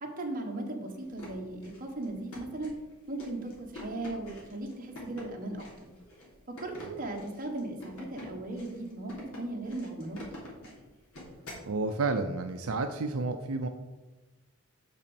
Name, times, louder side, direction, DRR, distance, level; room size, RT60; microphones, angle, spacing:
voice 1, 0.0-2.7 3.1-5.9 6.5-10.2, right 2 dB, 40° right, 1 dB, 1.3 m, -37 dB
sound 1, 1.0-11.7, left 1 dB, 80° left, 3.1 m, -47 dB
voice 2, 11.7-13.7, right 3 dB, 75° right, 6 dB, 0.5 m, -30 dB
6.1 x 5.6 x 7.0 m, 1.1 s
head